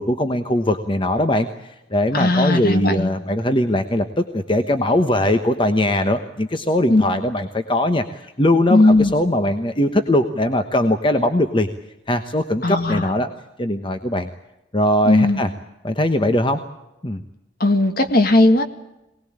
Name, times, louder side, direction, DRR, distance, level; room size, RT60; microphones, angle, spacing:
voice 1, 0.0-11.7 12.1-13.3 13.6-14.3 14.7-15.5 15.8-16.7 17.0-17.2, left 1 dB, 25° left, 7 dB, 1.1 m, -20 dB
voice 2, 2.1-3.1 6.9-7.0 8.7-9.1 12.6-13.0 15.1-15.4 17.6-18.6, left 2 dB, 50° left, 8 dB, 2.0 m, -16 dB
23.5 x 19.5 x 8.8 m, 0.93 s
head